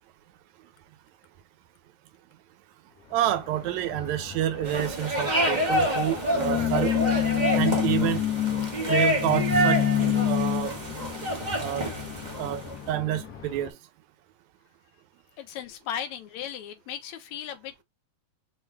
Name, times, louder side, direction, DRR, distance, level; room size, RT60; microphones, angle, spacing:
voice 1, 3.1-6.9 7.5-8.2 8.9-9.8 10.3-10.8 11.6-11.9 12.4-13.8, right 12 dB, 80° right, 1.9 m, -28 dB
sound 1, 3.3-13.7, left 11 dB, 50° left, 1.1 m, -29 dB
sound 2, 4.6-12.7, equal, 30° right, 0.8 m, -28 dB
voice 2, 15.4-17.8, left 9 dB, 75° left, 2.1 m, -36 dB
5.3 x 2.5 x 3.3 m
omnidirectional pair, 3.3 m